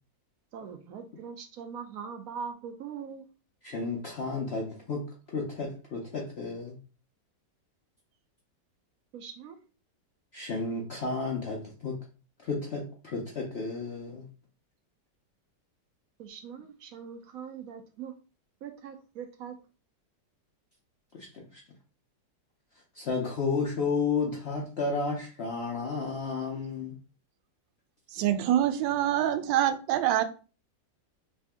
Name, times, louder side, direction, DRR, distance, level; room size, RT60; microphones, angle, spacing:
voice 1, 0.5-3.2 9.1-9.6 16.2-18.1 18.6-19.6, right 7 dB, 70° right, 0.8 m, -41 dB
voice 2, 3.6-6.8 10.3-12.0 12.4-14.3 21.1-21.6 22.9-27.0, left 4 dB, 75° left, 0.5 m, -32 dB
voice 3, 28.1-30.2, right 11 dB, 90° right, 1.3 m, -25 dB
3.3 x 2.7 x 3.4 m
omnidirectional pair, 1.9 m